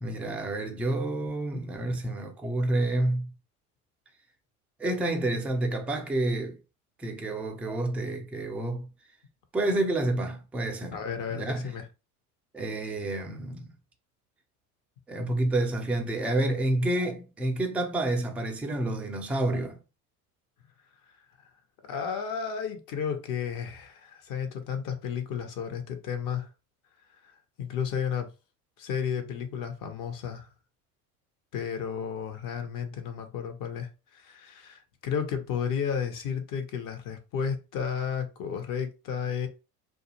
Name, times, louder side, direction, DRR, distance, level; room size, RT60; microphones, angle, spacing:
voice 1, 0.0-3.3 4.8-6.6 7.0-8.9 9.5-11.0 11.3-11.7 12.5-13.7 15.1-19.8, right 1 dB, 5° right, 0.4 m, -29 dB
voice 2, 10.9-11.9 21.8-26.5 27.6-28.3 28.8-30.5 31.5-39.5, left 7 dB, 45° left, 0.8 m, -32 dB
2.4 x 2.4 x 2.8 m
hypercardioid pair, 75°, 46 cm